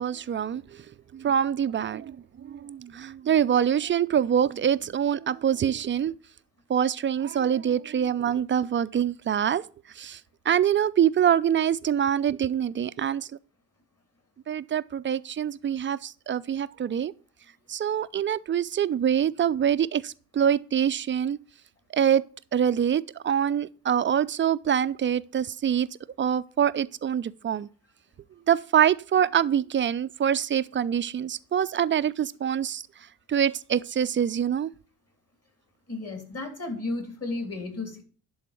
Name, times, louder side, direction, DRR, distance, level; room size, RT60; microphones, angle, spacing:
voice 1, 0.0-6.1 6.7-9.6 9.9-13.3 14.5-17.1 17.7-21.4 21.9-22.2 22.5-25.9 26.2-27.7 28.5-32.8 33.3-34.7, right 9 dB, 25° right, 0.4 m, -25 dB
voice 2, 35.9-38.0, left 2 dB, 30° left, 3.3 m, -33 dB
11.0 x 4.0 x 7.4 m
hypercardioid pair, 50°, 47 cm